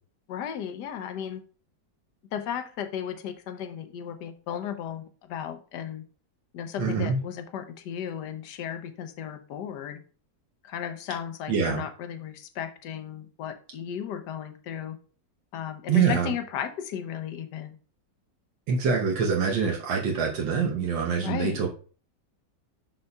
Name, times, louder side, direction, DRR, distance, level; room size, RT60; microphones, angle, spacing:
voice 1, 0.3-1.4 2.3-6.0 6.5-10.0 10.6-15.0 15.5-17.8 21.2-21.6, left 9 dB, 70° left, 8 dB, 1.3 m, -35 dB
voice 2, 6.8-7.2 11.5-11.8 15.9-16.3 18.7-21.7, right 6 dB, 75° right, -1 dB, 1.7 m, -25 dB
12.0 x 4.1 x 2.3 m, 0.40 s
omnidirectional pair, 2.1 m